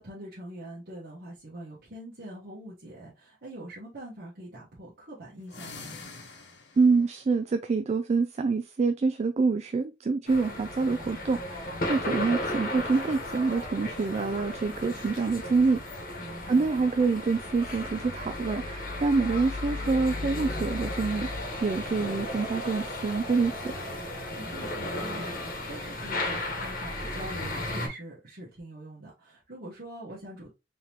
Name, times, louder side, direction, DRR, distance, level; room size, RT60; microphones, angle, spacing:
voice 1, 0.0-6.0 16.2-16.7 24.3-30.5, right 1 dB, 60° right, 1.3 m, -43 dB
sound 1, 5.4-7.0, left 4 dB, 75° left, 1.1 m, -44 dB
voice 2, 6.8-15.8 16.5-23.7, right 4 dB, 35° right, 0.3 m, -26 dB
sound 2, 10.3-27.9, left 1 dB, 50° left, 1.2 m, -34 dB
3.8 x 3.5 x 2.9 m
head